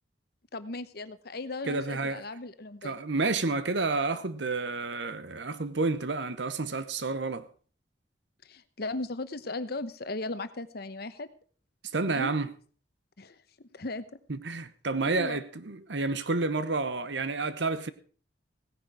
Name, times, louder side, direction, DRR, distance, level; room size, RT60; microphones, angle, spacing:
voice 1, 0.5-3.0 8.4-11.3 12.1-12.3 13.2-13.4 13.7-14.2 15.1-15.4, left 2 dB, 55° left, 1.0 m, -37 dB
voice 2, 1.6-2.2 2.8-7.5 11.9-12.5 14.3-17.9, right 3 dB, 70° right, 1.0 m, -30 dB
16.5 x 10.5 x 4.8 m
head